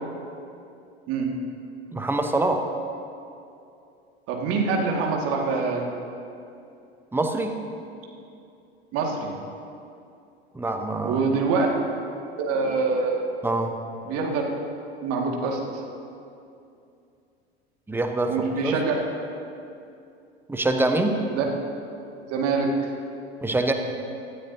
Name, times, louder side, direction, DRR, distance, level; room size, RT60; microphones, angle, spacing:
voice 1, 1.9-2.7 7.1-7.6 10.5-11.2 13.4-13.8 17.9-18.3 18.6-18.8 20.5-21.2 23.4-23.7, right 2 dB, 5° right, 5 dB, 1.0 m, -24 dB
voice 2, 4.3-5.8 8.9-9.3 11.0-11.7 12.4-13.3 14.0-14.4 15.0-15.8 18.3-19.0 21.3-21.5 22.3-22.7, right 4 dB, 45° right, 0 dB, 2.2 m, -25 dB
17.5 x 13.0 x 2.8 m, 2.6 s
figure-of-eight pair, 75°, 32 cm